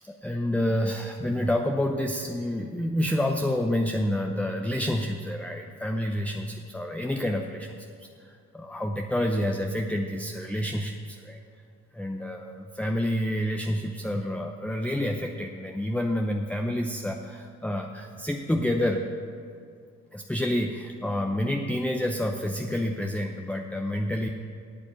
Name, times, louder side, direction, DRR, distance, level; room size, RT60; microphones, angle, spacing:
voice 1, 0.1-11.4 11.9-19.0 20.1-24.3, left 1 dB, 5° left, 2 dB, 0.7 m, -28 dB
8.7 x 8.2 x 7.9 m, 2.3 s
cardioid pair, 80°, 30 cm